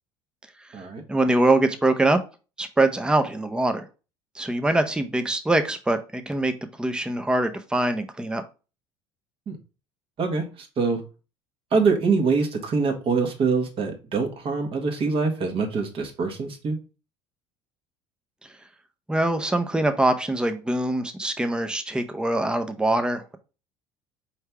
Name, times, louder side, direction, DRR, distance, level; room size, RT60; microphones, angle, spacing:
voice 1, 1.1-2.2 2.6-3.8 4.3-6.5 6.8-8.4 19.1-23.4, right 2 dB, 5° right, 7 dB, 0.7 m, -23 dB
voice 2, 10.2-11.0 11.7-16.8, right 4 dB, 45° right, 3 dB, 1.4 m, -24 dB
4.5 x 3.2 x 3.4 m, 0.32 s
hypercardioid pair, 70°, 13 cm